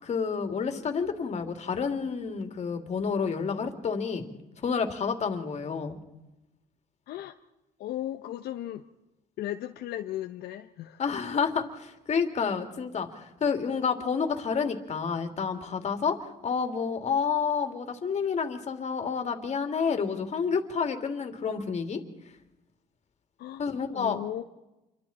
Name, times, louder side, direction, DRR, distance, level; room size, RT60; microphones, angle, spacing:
voice 1, 0.0-4.3 4.6-6.0 11.0-16.2 16.4-22.0 23.6-24.2, left 6 dB, 40° left, 6 dB, 3.0 m, -29 dB
voice 2, 7.8-8.8 9.4-11.0 23.4-23.6 23.9-24.4, left 12 dB, 75° left, 5 dB, 1.1 m, -36 dB
28.5 x 24.0 x 4.4 m, 0.96 s
cardioid pair, 110°, 17 cm